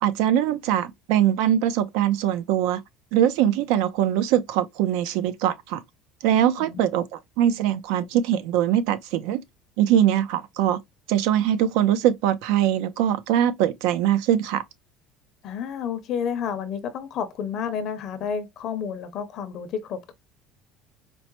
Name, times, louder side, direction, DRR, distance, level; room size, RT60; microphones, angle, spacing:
voice 1, 0.0-2.8 3.1-5.8 6.2-9.4 9.8-10.8 11.1-14.6, right 11 dB, 75° right, 0.5 m, -22 dB
voice 2, 15.4-20.1, left 7 dB, 40° left, 0.5 m, -30 dB
4.5 x 2.0 x 2.9 m
cardioid pair, 170°, 0 cm